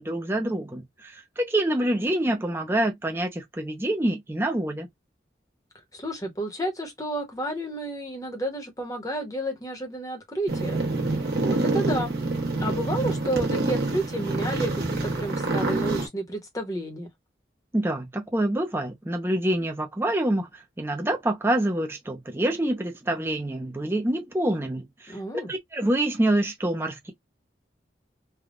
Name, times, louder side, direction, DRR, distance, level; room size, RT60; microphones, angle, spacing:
voice 1, 0.0-4.9 17.7-27.1, right 1 dB, 15° right, 0.5 m, -26 dB
voice 2, 5.9-10.8 11.1-11.2 11.4-12.2 12.6-17.1 25.1-25.5, right 1 dB, 20° left, 0.9 m, -31 dB
sound 1, 10.5-16.1, right 2 dB, 60° right, 1.1 m, -26 dB
3.4 x 2.2 x 2.4 m
head